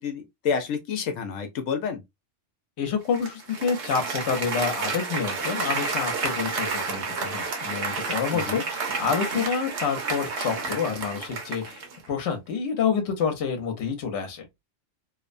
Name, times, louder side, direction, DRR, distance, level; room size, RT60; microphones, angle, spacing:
voice 1, 0.0-2.0 8.3-8.6, left 6 dB, 85° left, 1.0 m, -29 dB
voice 2, 2.8-14.5, left 6 dB, 65° left, 1.0 m, -28 dB
Applause, 3.1-12.1, right 4 dB, 65° right, 1.0 m, -30 dB
2.8 x 2.1 x 2.4 m
omnidirectional pair, 1.3 m